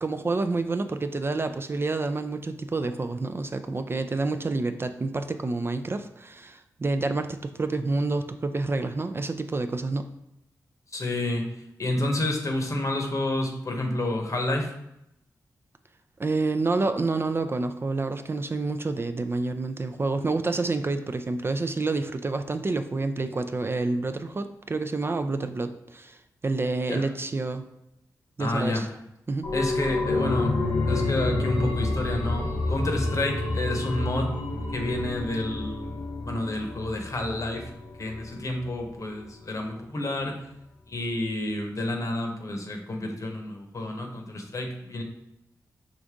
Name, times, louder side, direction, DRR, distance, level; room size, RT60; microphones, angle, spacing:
voice 1, 0.0-10.0 16.2-26.2 26.4-27.6 28.4-28.9 29.3-29.5, right 3 dB, 35° right, 8 dB, 0.3 m, -28 dB
voice 2, 10.9-14.7 26.9-27.0 28.4-28.8 29.5-34.4 34.7-36.0 36.3-37.7 38.0-40.4 40.9-45.0, left 1 dB, 50° left, 3 dB, 0.9 m, -29 dB
sound 1, 29.4-38.8 39.1-39.2, left 2 dB, 85° left, 0.7 m, -29 dB
5.0 x 2.5 x 3.5 m, 0.85 s
supercardioid pair, 40°, 7 cm